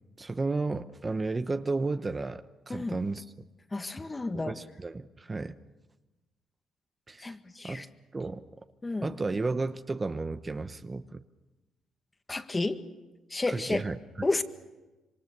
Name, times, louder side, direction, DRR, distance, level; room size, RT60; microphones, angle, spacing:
voice 1, 0.2-3.2 4.3-5.5 7.1-7.4 7.6-7.8 8.1-8.4 9.0-11.2 13.5-14.3, right 3 dB, 25° right, 9 dB, 0.9 m, -33 dB
voice 2, 3.7-4.5 7.2-7.9 8.8-9.1 12.3-12.8 13.3-13.9 14.2-14.4, left 2 dB, 20° left, 8 dB, 1.7 m, -31 dB
26.5 x 24.0 x 6.8 m, 1.1 s
cardioid pair, 90°, 0 cm